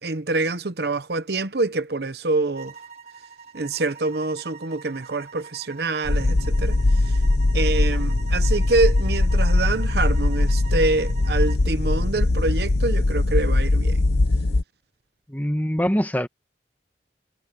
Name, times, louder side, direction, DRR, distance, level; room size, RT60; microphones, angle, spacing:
voice 1, 0.0-2.7 3.5-7.2 7.5-14.0, right 3 dB, 65° right, 0.9 m, -26 dB
sound 1, 2.5-11.7, right 6 dB, 40° right, 5.1 m, -44 dB
sound 2, 6.1-14.6, left 2 dB, 70° left, 0.9 m, -21 dB
voice 2, 15.3-16.3, equal, 10° left, 1.5 m, -24 dB
head